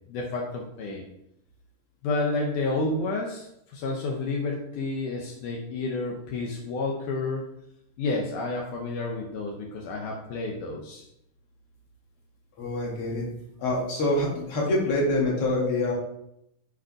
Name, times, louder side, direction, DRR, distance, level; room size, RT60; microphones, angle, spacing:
voice 1, 0.1-1.0 2.0-3.5 3.7-7.4 8.0-11.0, left 3 dB, 75° left, 0 dB, 2.4 m, -30 dB
voice 2, 12.6-13.3 13.6-15.9, left 1 dB, 45° left, -2 dB, 2.7 m, -25 dB
7.2 x 5.2 x 4.9 m, 0.79 s
omnidirectional pair, 3.7 m